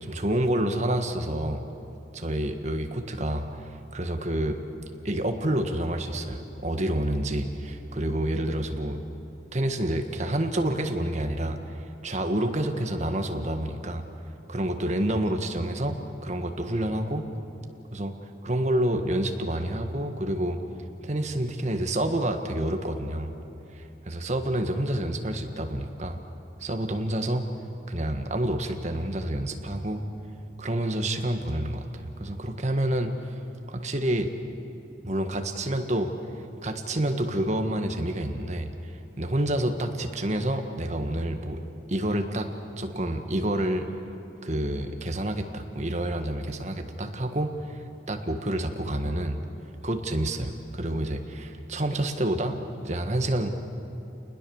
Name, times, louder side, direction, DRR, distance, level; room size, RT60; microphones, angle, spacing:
voice 1, 0.0-1.6 2.1-4.6 5.0-7.5 7.9-9.0 9.5-11.6 12.0-14.0 14.5-17.3 17.9-18.1 18.4-20.6 21.0-23.3 23.7-26.2 26.6-27.5 27.9-30.0 30.6-33.1 33.7-34.3 35.0-36.1 36.6-38.7 39.2-41.6 41.9-42.5 42.8-43.8 44.4-47.8 48.1-49.4 49.8-53.5, right 1 dB, 40° right, 5 dB, 1.6 m, -28 dB
29.5 x 20.0 x 7.2 m, 2.9 s
head